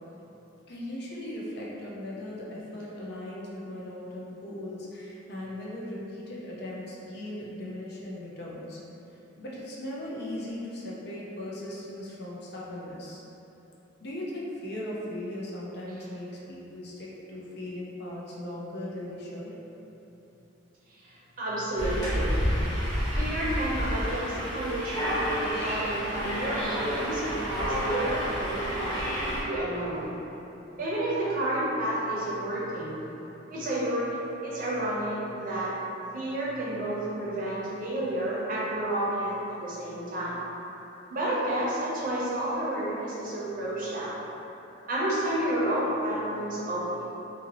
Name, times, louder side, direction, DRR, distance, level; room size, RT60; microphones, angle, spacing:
voice 1, 0.7-8.8 9.4-13.2 14.0-19.5, left 1 dB, 55° left, -5 dB, 0.5 m, -38 dB
voice 2, 20.9-22.8 23.1-30.1 30.8-33.0 33.5-34.2 34.4-35.7 36.1-40.4 41.1-44.2 44.9-47.0, right 1 dB, 45° right, -7 dB, 0.6 m, -30 dB
sound 1, 21.8-29.4, equal, 25° left, 0.8 m, -30 dB
2.6 x 2.6 x 2.9 m, 3.0 s
head